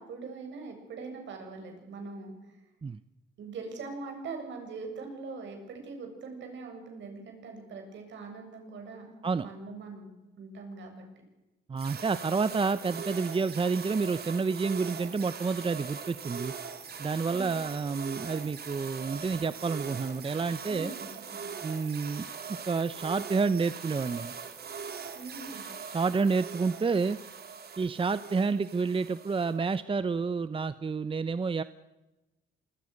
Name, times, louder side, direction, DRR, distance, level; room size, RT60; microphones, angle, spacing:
voice 1, 0.0-2.3 3.4-11.0 17.3-17.5 20.7-21.5 25.1-25.7, right 4 dB, 70° right, 4 dB, 7.6 m, -42 dB
voice 2, 11.7-16.5 17.0-20.9 21.6-22.3 22.7-24.3 25.9-27.2 27.8-31.6, right 4 dB, 25° right, 14 dB, 0.8 m, -29 dB
sound 1, 11.8-29.8, right 6 dB, 55° right, 3.3 m, -41 dB
26.5 x 22.5 x 6.6 m, 1.0 s
cardioid pair, 90°, 20 cm